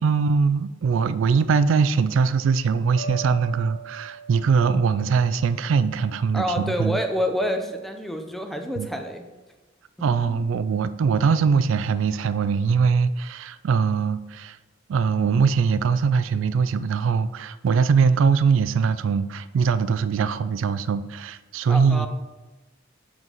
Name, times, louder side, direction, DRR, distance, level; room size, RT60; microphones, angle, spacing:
voice 1, 0.0-7.0 8.8-8.9 10.0-14.6 14.9-22.1, right 5 dB, 75° right, 14 dB, 0.3 m, -22 dB
sound 1, 3.0-6.1, right 4 dB, 60° left, 0.8 m, -40 dB
voice 2, 6.3-9.2 10.2-10.4 21.7-22.1, equal, ahead, 5 dB, 0.5 m, -27 dB
7.6 x 4.5 x 4.0 m, 1.2 s
head